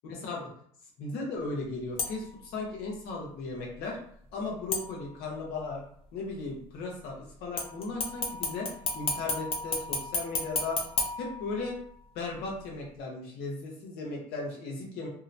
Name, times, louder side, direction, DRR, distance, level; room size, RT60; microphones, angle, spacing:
voice 1, 0.0-0.5 1.0-4.0 4.3-5.8 6.1-11.7 12.1-15.1, left 3 dB, 75° left, -1 dB, 0.9 m, -36 dB
sound 1, 2.0-2.4 4.7-5.4 7.6-12.0 12.4-12.5, left 3 dB, 35° left, 0.6 m, -33 dB
2.8 x 2.0 x 2.5 m, 0.64 s
supercardioid pair, 90°, 17 cm